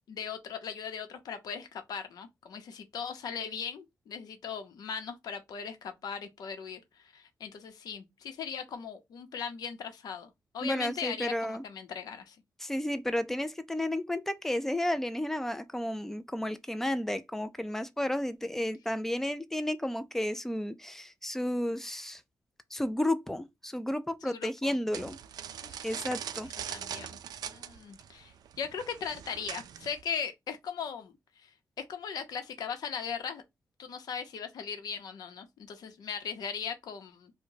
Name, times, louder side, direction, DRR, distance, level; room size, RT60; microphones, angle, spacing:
voice 1, 0.1-12.4 24.2-24.7 25.6-25.9 26.7-31.5 31.8-33.4 33.8-37.3, left 7 dB, 85° left, 0.7 m, -39 dB
voice 2, 10.6-11.6 12.6-22.2 22.7-25.2 25.8-26.5, left 1 dB, 5° left, 0.3 m, -32 dB
sound 1, 24.9-30.0, right 9 dB, 90° right, 0.3 m, -41 dB
4.6 x 2.1 x 2.7 m
wide cardioid pair, 170°, 7 cm